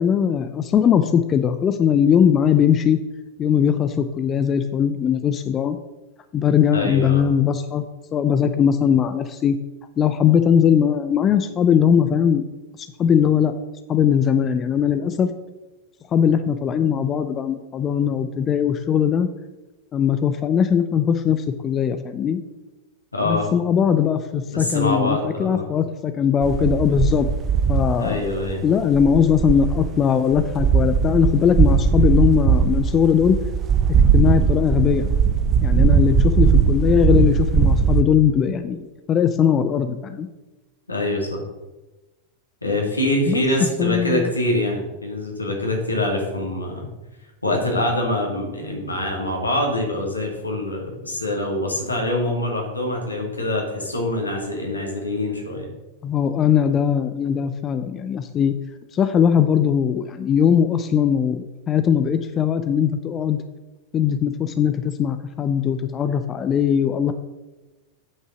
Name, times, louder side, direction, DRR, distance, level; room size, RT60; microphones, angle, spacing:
voice 1, 0.0-3.0 3.4-5.8 6.3-7.8 8.1-9.6 10.0-12.4 12.8-13.5 13.9-15.3 16.1-19.3 19.9-22.4 23.2-27.3 27.7-28.3 28.6-33.4 34.1-35.1 35.6-40.3 43.3-43.4 43.8-44.3 56.0-58.5 58.9-63.4 63.9-67.1, left 8 dB, 30° left, 9 dB, 0.6 m, -20 dB
voice 2, 6.7-7.2 23.1-23.5 24.5-25.6 28.0-28.6 36.6-36.7 40.9-41.4 42.6-46.9 47.4-55.7, left 1 dB, 85° left, 0 dB, 2.4 m, -24 dB
sound 1, 26.4-29.9 30.3-38.0, right 6 dB, 30° right, 0.7 m, -19 dB
9.2 x 5.4 x 6.1 m, 1.1 s
figure-of-eight pair, 90°, 0 cm